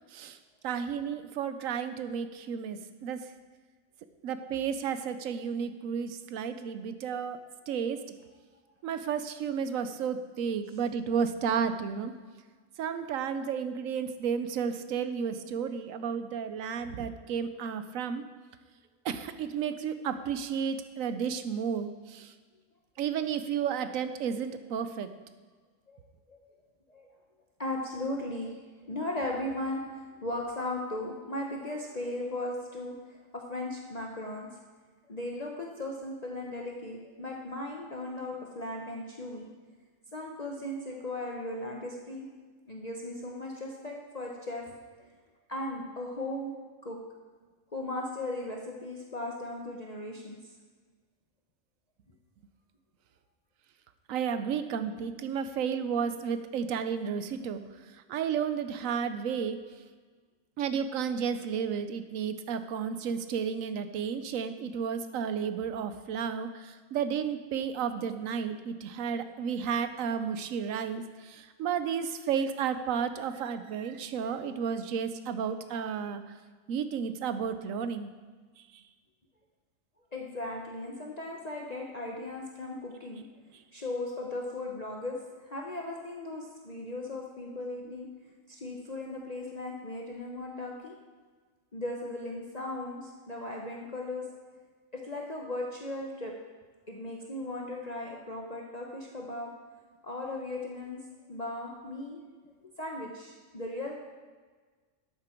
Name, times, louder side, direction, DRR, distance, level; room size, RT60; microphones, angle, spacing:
voice 1, 0.6-3.3 4.2-7.4 7.7-8.2 8.8-12.1 12.8-18.2 19.0-22.3 23.0-25.1 54.1-57.6 57.9-59.6 60.6-76.2 76.7-78.1 78.7-78.8, right 7 dB, 80° right, 10 dB, 1.1 m, -32 dB
voice 2, 27.6-28.5 28.8-34.5 35.1-39.5 40.1-42.3 42.7-45.1 45.5-46.5 46.8-47.0 47.7-50.4 80.1-83.2 83.7-88.1 88.5-91.0 91.7-94.3 94.9-96.3 96.9-99.5 100.0-101.0 101.3-102.2 102.8-104.0, left 1 dB, 35° left, -1 dB, 1.0 m, -37 dB
12.0 x 8.6 x 4.4 m, 1.4 s
omnidirectional pair, 1.4 m